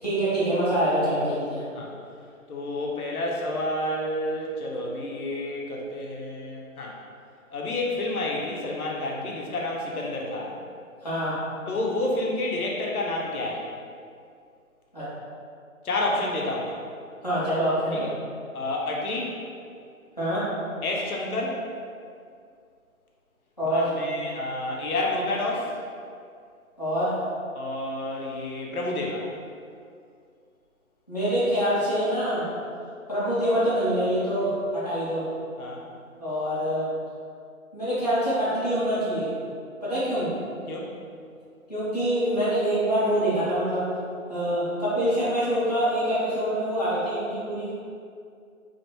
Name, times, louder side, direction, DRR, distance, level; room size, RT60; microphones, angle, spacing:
voice 1, 0.0-1.6 11.0-11.4 14.9-15.1 17.2-18.1 20.2-20.5 23.6-23.9 26.8-27.2 31.1-32.5 33.1-35.3 36.2-36.9 37.7-39.3 39.8-40.3 41.7-43.9 44.3-47.7, equal, 30° left, -12 dB, 0.5 m, -25 dB
voice 2, 2.5-7.0 7.5-10.5 11.7-13.7 15.8-16.8 17.9-18.1 18.5-19.4 20.8-21.6 23.6-25.7 27.5-29.3 35.6-35.8 40.7-40.9, left 2 dB, 90° left, -2 dB, 0.7 m, -29 dB
2.5 x 2.1 x 2.7 m, 2.3 s
figure-of-eight pair, 170°, 43 cm